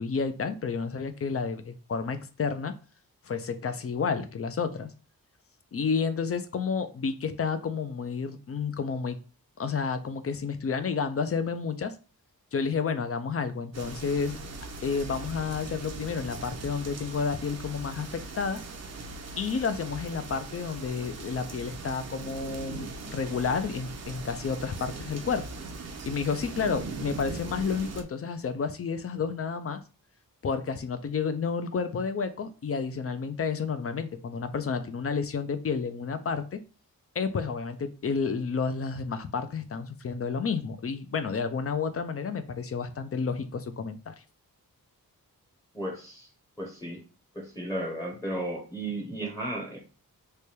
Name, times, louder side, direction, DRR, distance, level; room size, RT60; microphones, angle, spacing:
voice 1, 0.0-2.7 3.2-4.9 5.7-9.2 9.6-11.9 12.5-14.4 14.8-18.6 19.4-25.5 26.1-29.8 30.4-36.6 37.2-44.1, left 5 dB, 45° left, 10 dB, 0.4 m, -30 dB
sound 1, 13.7-28.0, right 3 dB, 50° right, 0.5 m, -40 dB
voice 2, 45.7-46.3 46.6-47.0 47.3-49.8, right 1 dB, 10° left, 0 dB, 0.8 m, -34 dB
3.3 x 2.2 x 4.2 m, 0.35 s
wide cardioid pair, 150°, 35 cm